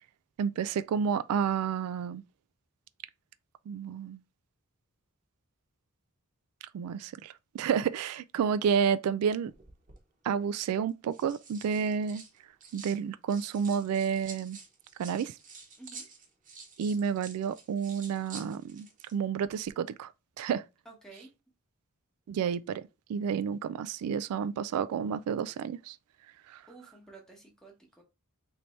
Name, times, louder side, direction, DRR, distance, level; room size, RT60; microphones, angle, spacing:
voice 1, 0.4-2.2 3.7-4.2 6.7-9.5 10.2-12.2 12.7-14.6 15.0-15.3 16.8-20.1 20.4-20.6 22.3-22.8 23.1-26.0 26.5-26.6, right 7 dB, 90° right, 0.3 m, -30 dB
sound 1, 9.5-10.0 10.9-13.0 13.3-19.1 19.4-19.7, right 4 dB, 35° right, 1.0 m, -49 dB
voice 2, 15.8-16.1 20.8-21.3 26.7-28.0, right 3 dB, 5° left, 1.1 m, -51 dB
3.3 x 2.7 x 4.3 m
head